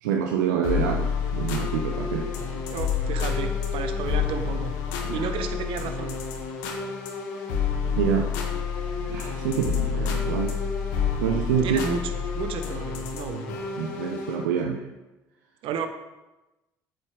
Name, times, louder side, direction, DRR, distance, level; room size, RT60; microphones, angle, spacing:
voice 1, 0.0-2.3 5.0-5.3 8.0-8.3 9.1-10.6 11.2-11.8 13.8-14.9, right 8 dB, 85° right, 3 dB, 0.7 m, -27 dB
sound 1, 0.6-14.5, left 6 dB, 80° left, 1.3 m, -29 dB
voice 2, 2.7-4.7 5.1-6.1 11.6-13.6 15.6-15.9, right 7 dB, 65° right, 8 dB, 1.1 m, -32 dB
8.3 x 8.1 x 5.1 m, 1.0 s
hypercardioid pair, 55°, 10 cm